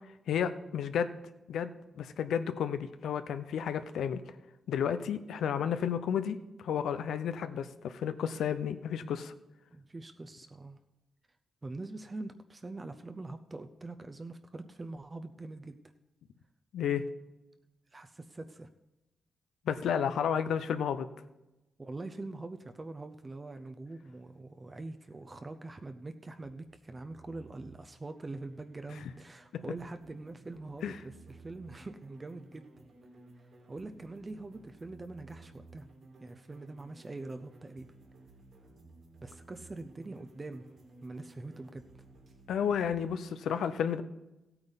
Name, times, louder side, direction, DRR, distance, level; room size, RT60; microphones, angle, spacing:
voice 1, 0.3-1.1 1.5-4.2 4.7-9.3 16.7-17.0 19.7-21.1 29.5-29.6 30.8-31.0 42.5-44.0, left 8 dB, 90° left, 11 dB, 0.6 m, -32 dB
voice 2, 9.7-10.8 11.6-15.8 17.9-18.7 21.8-32.7 33.4-35.8 36.2-37.9 39.2-40.7 41.0-41.8, right 2 dB, 25° right, 7 dB, 0.6 m, -44 dB
sound 1, 26.4-43.1, right 2 dB, 70° right, 3.0 m, -56 dB
15.0 x 8.9 x 4.0 m, 0.99 s
cardioid pair, 95°, 0 cm